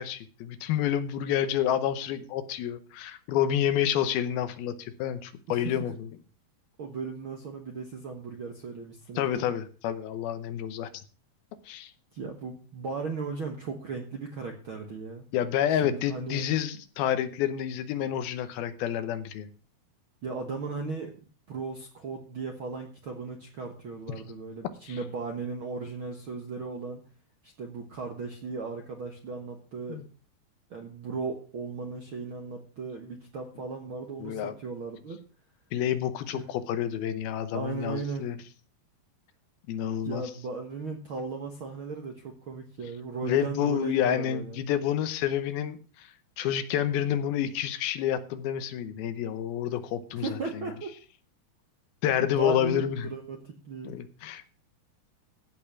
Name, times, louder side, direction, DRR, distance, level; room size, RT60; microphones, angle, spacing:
voice 1, 0.0-5.9 9.2-10.9 11.7-11.9 15.3-19.5 24.9-25.0 29.9-30.0 34.2-34.5 35.7-38.4 39.7-40.2 43.2-46.1 46.4-50.3 52.0-53.1 53.9-54.4, left 10 dB, 80° left, 11 dB, 2.8 m, -29 dB
voice 2, 6.8-9.4 12.1-15.2 15.7-16.4 20.2-21.1 21.5-27.0 27.4-30.0 30.7-35.2 36.3-36.4 37.5-38.3 40.0-44.6 50.1-50.9 52.2-53.9, right 4 dB, 60° right, 3 dB, 1.3 m, -36 dB
15.5 x 5.4 x 6.1 m, 0.39 s
omnidirectional pair, 4.4 m